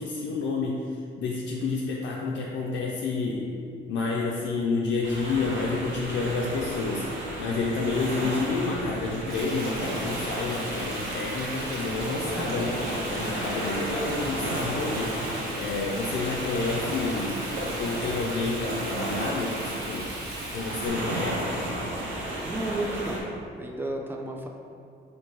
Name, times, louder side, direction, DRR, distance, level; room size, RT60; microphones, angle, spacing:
voice 1, 0.0-3.6 3.9-7.1 7.4-17.5 17.8-20.1 20.5-21.5, left 3 dB, 65° left, -3 dB, 0.5 m, -29 dB
sound 1, 5.0-23.2, right 1 dB, 75° right, 0.8 m, -33 dB
Frying (food), 9.3-20.9, right 1 dB, 55° right, 1.0 m, -39 dB
voice 2, 22.4-23.2 23.6-24.5, right 2 dB, 10° right, 1 dB, 0.4 m, -32 dB
3.0 x 2.8 x 4.5 m, 2.3 s
cardioid pair, 90°, 20 cm